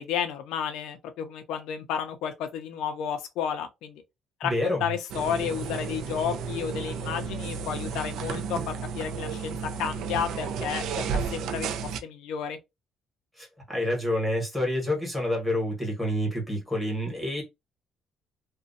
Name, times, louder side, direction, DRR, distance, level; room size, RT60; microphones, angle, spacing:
voice 1, 0.0-4.0 4.4-10.8 11.3-11.7 12.0-12.6, left 8 dB, 85° left, 0.4 m, -32 dB
voice 2, 4.4-4.9 13.4-17.4, left 1 dB, 5° right, 1.2 m, -28 dB
sound 1, 5.1-12.0, right 6 dB, 70° right, 0.3 m, -32 dB
2.5 x 2.1 x 2.5 m
cardioid pair, 160°, 0 cm